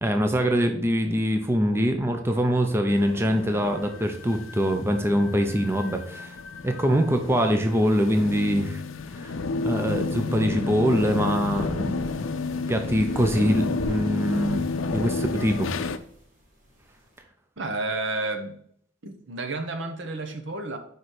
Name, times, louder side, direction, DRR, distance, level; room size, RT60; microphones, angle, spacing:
voice 1, 0.0-6.4 6.6-8.8 9.1-9.3 9.6-12.2 12.7-14.6 14.9-15.7, equal, 15° right, 0.6 m, -23 dB
sound 1, 2.9-16.0, left 4 dB, 80° left, 0.5 m, -31 dB
sound 2, 10.8-17.2, equal, 40° right, 2.2 m, -44 dB
voice 2, 17.6-18.6 19.0-20.8, right 2 dB, 65° right, 1.0 m, -31 dB
6.4 x 5.2 x 4.3 m
head